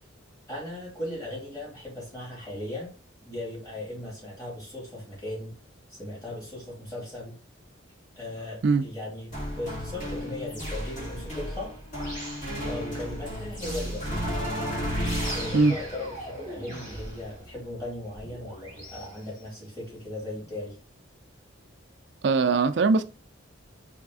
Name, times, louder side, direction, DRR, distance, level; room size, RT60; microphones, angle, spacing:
voice 1, 0.5-2.9 3.2-5.5 5.9-7.3 8.2-11.7 12.6-14.4 15.3-20.7, left 1 dB, 20° left, 2.4 m, -37 dB
sound 1, 9.3-19.1, equal, 35° left, 1.8 m, -34 dB
voice 2, 22.2-23.0, right 4 dB, 55° right, 0.4 m, -21 dB
4.0 x 3.4 x 3.6 m
head